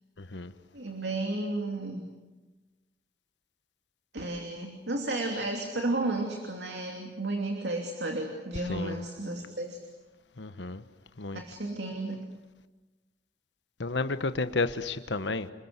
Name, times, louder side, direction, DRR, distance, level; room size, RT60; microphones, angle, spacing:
voice 1, 0.7-2.1 4.1-9.8 11.3-12.3, right 2 dB, 70° right, 3 dB, 3.0 m, -33 dB
voice 2, 8.7-9.0 10.4-10.8 11.2-11.4 13.8-15.5, left 3 dB, 80° left, 11 dB, 1.2 m, -31 dB
29.5 x 21.0 x 8.2 m, 1.2 s
head